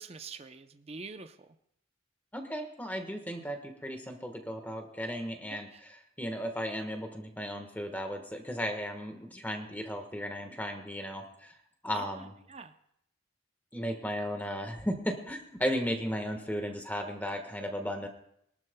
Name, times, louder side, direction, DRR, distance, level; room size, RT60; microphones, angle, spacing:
voice 1, 0.0-1.4 5.5-5.8 11.9-12.7, right 4 dB, 30° right, 8 dB, 0.6 m, -45 dB
voice 2, 2.3-11.5 11.8-12.3 13.7-18.1, equal, 10° left, 5 dB, 1.3 m, -35 dB
26.0 x 12.0 x 2.2 m, 0.74 s
head